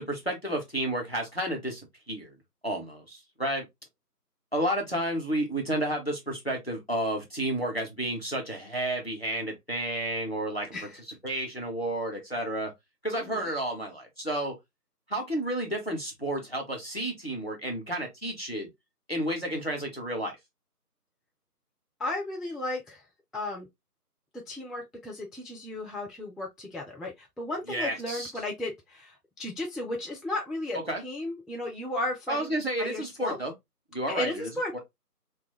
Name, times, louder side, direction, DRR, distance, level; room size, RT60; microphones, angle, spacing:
voice 1, 0.0-1.8 2.1-2.3 2.6-3.7 4.5-10.7 11.2-12.7 13.0-14.5 15.1-18.7 19.1-20.3 27.7-28.3 30.9-31.0 32.3-33.5 33.9-34.8, right 1 dB, 40° left, 0.6 m, -31 dB
voice 2, 13.1-13.5 22.0-23.0 23.3-23.7 24.5-32.5 32.8-33.4 34.1-34.8, left 1 dB, ahead, 0.4 m, -34 dB
2.2 x 2.1 x 2.8 m
figure-of-eight pair, 175°, 48 cm